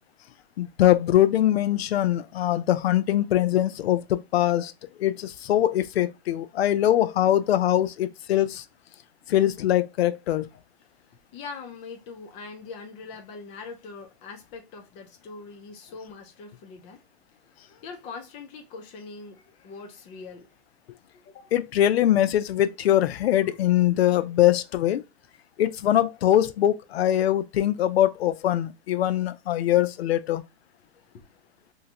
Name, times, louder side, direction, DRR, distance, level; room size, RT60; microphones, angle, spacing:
voice 1, 0.6-4.7 5.0-8.6 9.3-10.5 21.5-25.0 25.6-30.4, left 12 dB, 70° left, 0.6 m, -22 dB
voice 2, 11.3-17.1 17.4-20.6 21.1-21.9 23.4-23.6 30.9-31.3, left 4 dB, 20° left, 0.6 m, -42 dB
3.2 x 2.8 x 2.9 m
hypercardioid pair, 155°, 33 cm